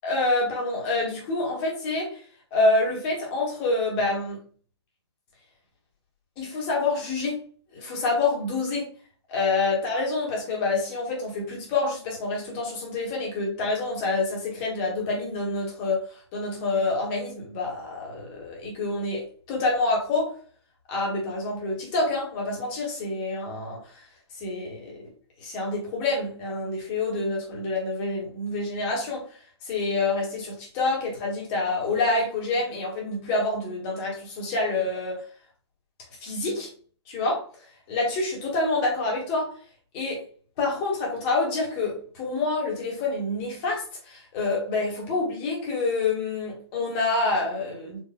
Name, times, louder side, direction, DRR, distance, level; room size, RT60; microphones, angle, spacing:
voice 1, 0.0-2.2 2.5-4.4 6.4-7.4 7.7-8.9 9.3-20.3 20.9-24.0 24.4-25.0 25.4-35.2 36.2-36.7 37.1-37.4 37.9-39.6 39.9-40.2 40.6-48.0, left 3 dB, 25° left, 2.0 m, -27 dB
4.6 x 4.6 x 2.3 m
figure-of-eight pair, 130°, 14 cm